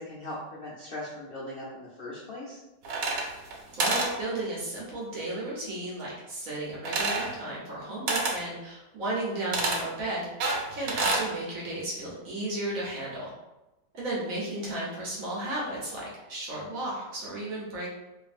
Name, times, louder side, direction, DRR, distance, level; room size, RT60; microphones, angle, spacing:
voice 1, 0.0-2.6 14.6-14.7, left 1 dB, 75° left, -8 dB, 0.5 m, -39 dB
sound 1, 2.8-3.5 3.8-4.1 6.9-7.3 8.1-8.4 9.5-9.8 10.4-11.3, right 3 dB, 80° right, 1.2 m, -27 dB
voice 2, 3.7-10.3 10.7-13.3 13.9-17.9, right 1 dB, 60° right, -5 dB, 1.1 m, -34 dB
2.6 x 2.5 x 2.4 m, 0.98 s
omnidirectional pair, 1.8 m